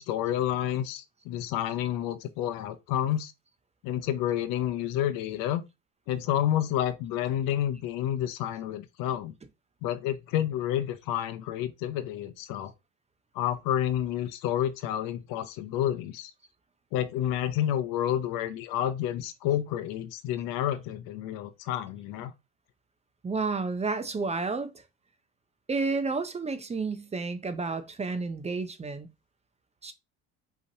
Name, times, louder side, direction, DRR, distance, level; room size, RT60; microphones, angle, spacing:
voice 1, 0.0-3.3 3.8-5.6 6.1-9.3 9.8-12.7 13.3-16.3 16.9-22.3, left 11 dB, 70° left, 0.8 m, -29 dB
voice 2, 23.2-24.7 25.7-29.1 29.8-29.9, right 4 dB, 20° right, 0.6 m, -31 dB
5.5 x 3.1 x 2.8 m
supercardioid pair, 100°, 36 cm